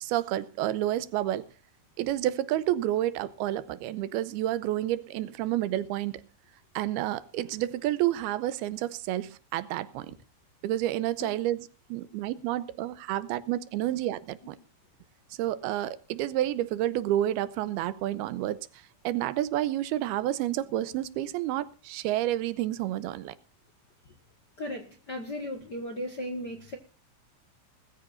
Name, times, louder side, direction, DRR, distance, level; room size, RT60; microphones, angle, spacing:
voice 1, 0.0-1.4 2.0-6.3 6.7-10.2 10.6-14.6 15.4-18.6 19.0-23.4, right 13 dB, 85° right, 2.7 m, -30 dB
voice 2, 24.6-26.8, left 1 dB, 50° left, 1.2 m, -36 dB
20.0 x 14.5 x 2.5 m
omnidirectional pair, 4.5 m